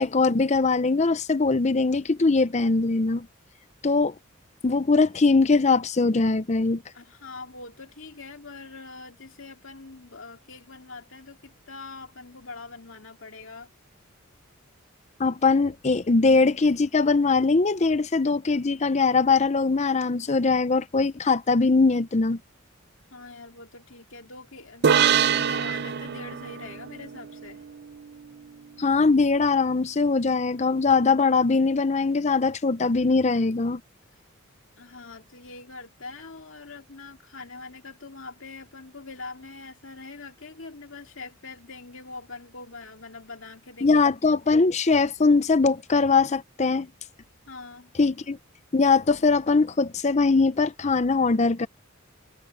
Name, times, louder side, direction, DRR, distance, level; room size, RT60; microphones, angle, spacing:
voice 1, 0.0-3.3 3.8-4.1 4.6-6.8 15.2-22.4 28.8-33.8 43.8-46.9 48.0-48.4 48.7-51.7, left 4 dB, 35° left, 0.6 m, -21 dB
voice 2, 6.9-13.7 23.1-27.6 34.8-44.0 47.5-47.9, left 3 dB, 65° left, 2.5 m, -43 dB
sound 1, 24.8-28.3, right 7 dB, 50° right, 0.5 m, -25 dB
head